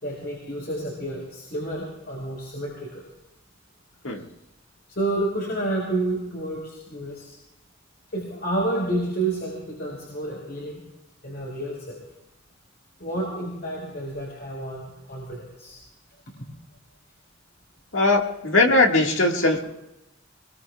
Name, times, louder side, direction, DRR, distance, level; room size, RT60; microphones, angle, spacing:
voice 1, 0.0-3.0 4.9-7.4 8.1-10.8 11.2-12.0 13.0-15.8, right 1 dB, 55° left, -2 dB, 4.8 m, -30 dB
voice 2, 17.9-19.6, left 2 dB, 75° left, 2 dB, 1.9 m, -20 dB
24.5 x 22.5 x 2.4 m, 0.92 s
head